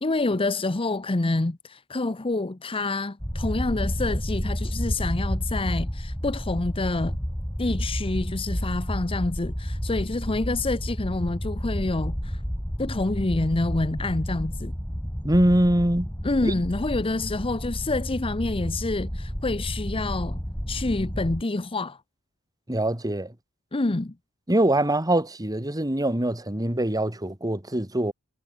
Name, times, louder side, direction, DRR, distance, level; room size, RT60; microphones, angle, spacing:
voice 1, 0.0-7.2 7.6-12.4 12.8-14.7 16.2-20.4 20.7-22.0 23.7-24.1, left 2 dB, 25° left, 0.7 m, -27 dB
sound 1, 3.2-21.4, equal, 10° left, 2.8 m, -31 dB
voice 2, 15.2-16.1 16.4-16.5 22.7-23.3 24.5-28.1, right 1 dB, 15° right, 2.3 m, -23 dB
head